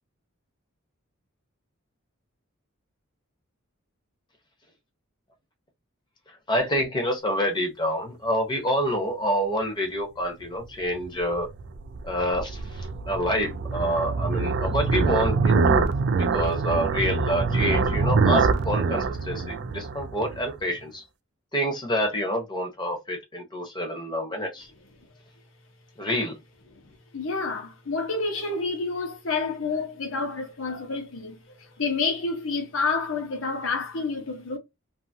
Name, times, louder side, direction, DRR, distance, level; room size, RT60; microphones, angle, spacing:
voice 1, 6.5-11.5 12.0-15.9 16.2-21.0 21.5-24.7 26.0-26.4, equal, 20° left, 0.8 m, -27 dB
sound 1, 11.0-20.5, right 4 dB, 55° right, 0.3 m, -25 dB
voice 2, 26.7-34.6, left 4 dB, 65° left, 0.9 m, -29 dB
2.7 x 2.6 x 2.7 m
head